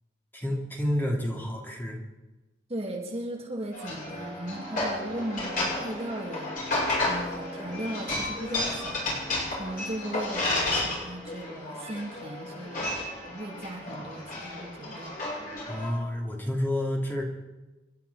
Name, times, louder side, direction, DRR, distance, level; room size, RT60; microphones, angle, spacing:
voice 1, 0.3-2.0 15.7-17.2, left 1 dB, 10° left, -1 dB, 2.8 m, -29 dB
voice 2, 2.7-9.0 9.5-12.9 13.3-15.1, right 1 dB, 35° right, 0 dB, 2.3 m, -37 dB
sound 1, 3.7-15.9, left 2 dB, 50° left, 6.9 m, -32 dB
Wind instrument woodwind instrument, 4.5-10.6, equal, 85° right, 2.9 m, -46 dB
30.0 x 11.5 x 4.2 m, 1.1 s
head